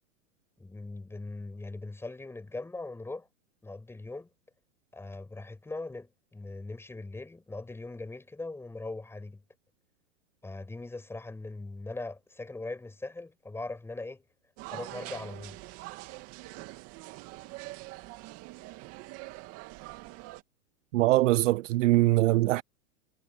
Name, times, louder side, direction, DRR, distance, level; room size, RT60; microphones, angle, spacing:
voice 1, 0.6-3.3 3.6-4.3 4.9-9.4 10.4-14.2 14.7-15.6, left 2 dB, 5° left, 6.3 m, -40 dB
sound 1, 14.6-20.4, right 20 dB, 35° right, 2.4 m, -44 dB
voice 2, 20.9-22.6, right 17 dB, 65° right, 0.6 m, -22 dB
hypercardioid pair, 145°, 40 cm